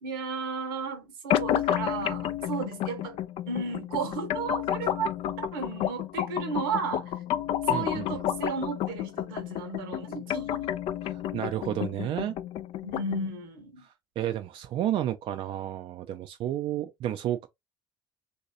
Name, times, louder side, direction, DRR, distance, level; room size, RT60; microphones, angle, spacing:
voice 1, 0.0-3.2 3.5-5.1 5.5-7.1 7.7-10.7 12.8-13.9, right 4 dB, 80° right, 0.9 m, -34 dB
sound 1, 1.3-13.3, left 11 dB, 55° left, 0.4 m, -31 dB
voice 2, 7.7-8.1 11.0-12.4 14.2-17.5, right 12 dB, 55° right, 0.4 m, -31 dB
3.1 x 2.6 x 2.7 m
hypercardioid pair, 60°, 11 cm